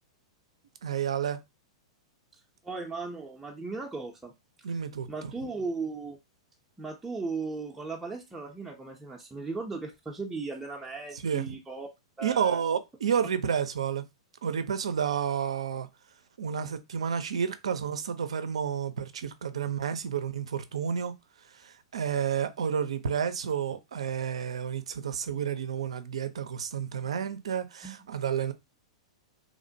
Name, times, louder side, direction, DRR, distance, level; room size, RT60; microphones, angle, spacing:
voice 1, 0.8-1.4 4.6-5.1 11.1-11.6 12.2-14.0 14.4-15.9 16.4-21.1 21.5-28.5, right 7 dB, 80° right, 0.4 m, -30 dB
voice 2, 2.6-4.3 4.7-4.8 5.1-6.2 6.8-11.9 12.2-12.6 27.8-28.0, right 4 dB, 10° right, 0.4 m, -37 dB
2.9 x 2.1 x 2.6 m
hypercardioid pair, 115°, 3 cm